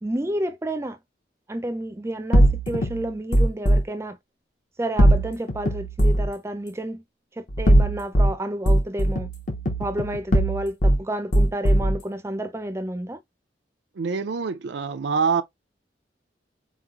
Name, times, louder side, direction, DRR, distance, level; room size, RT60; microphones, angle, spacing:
voice 1, 0.0-1.0 1.5-4.2 4.8-7.0 7.4-9.3 9.8-13.2, right 1 dB, 15° right, 0.4 m, -30 dB
sound 1, 2.3-3.8 5.0-6.3 7.5-8.3 8.7-11.0 11.3-12.0, right 1 dB, 45° left, 0.7 m, -19 dB
voice 2, 14.0-15.4, right 5 dB, 80° right, 0.4 m, -25 dB
4.3 x 3.1 x 2.4 m
head